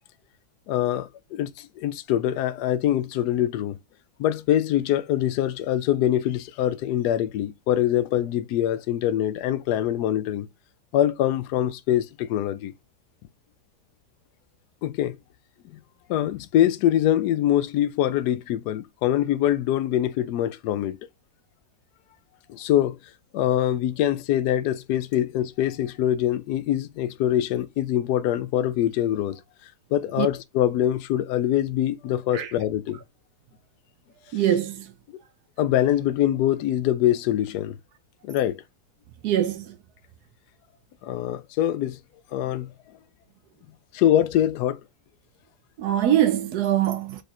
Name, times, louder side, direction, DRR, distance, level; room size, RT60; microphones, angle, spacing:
voice 1, 0.7-3.8 4.2-10.5 10.9-12.7 14.8-15.2 16.1-21.0 22.5-23.0 23.3-29.4 29.9-33.0 35.6-37.8 38.2-38.6 41.0-42.0 42.3-42.7 43.9-44.8, left 11 dB, 70° left, 1.1 m, -24 dB
voice 2, 34.3-34.9 39.2-39.8 45.8-47.2, right 11 dB, 70° right, 1.0 m, -23 dB
5.0 x 2.4 x 4.2 m
omnidirectional pair, 1.9 m